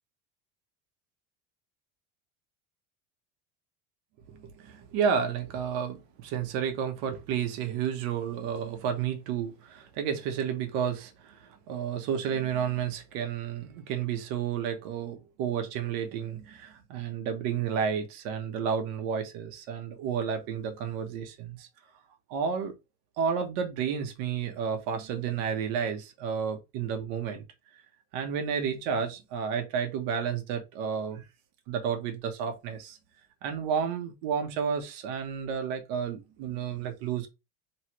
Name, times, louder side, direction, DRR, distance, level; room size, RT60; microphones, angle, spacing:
voice 1, 4.3-21.7 22.3-22.7 23.2-27.4 27.7-27.8 28.1-31.2 31.7-33.0 33.4-37.3, right 7 dB, 65° right, 1.1 m, -31 dB
3.2 x 3.1 x 2.9 m
cardioid pair, 150°, 35 cm